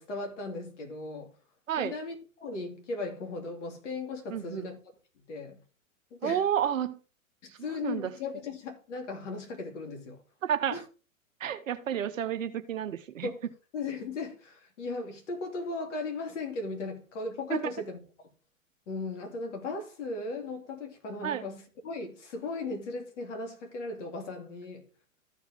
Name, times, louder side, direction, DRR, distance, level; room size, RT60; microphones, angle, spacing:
voice 1, 0.0-1.3 1.8-4.8 5.3-5.6 6.1-6.4 7.4-10.2 10.7-10.8 13.2-13.4 13.7-18.0 18.9-24.8, left 3 dB, 60° left, 2.6 m, -37 dB
voice 2, 4.3-4.7 6.2-7.0 7.7-8.1 10.4-10.8 11.4-13.3 17.5-17.6 21.2-21.5, right 9 dB, 70° right, 1.1 m, -30 dB
14.0 x 4.8 x 3.5 m
figure-of-eight pair, 105°, 41 cm